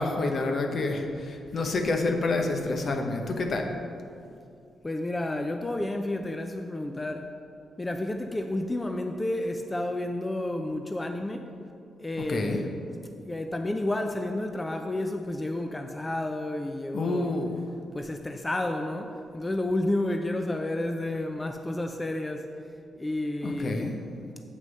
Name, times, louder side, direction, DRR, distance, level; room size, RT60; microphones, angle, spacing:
voice 1, 0.0-3.7 12.3-12.6 16.9-17.6 23.4-24.0, left 2 dB, 60° left, 4 dB, 1.0 m, -28 dB
voice 2, 4.8-7.3 7.8-11.5 12.0-12.7 13.2-17.3 17.9-22.5 23.0-23.9, left 1 dB, 25° left, 5 dB, 0.6 m, -31 dB
7.7 x 6.4 x 5.4 m, 2.5 s
supercardioid pair, 55°, 0 cm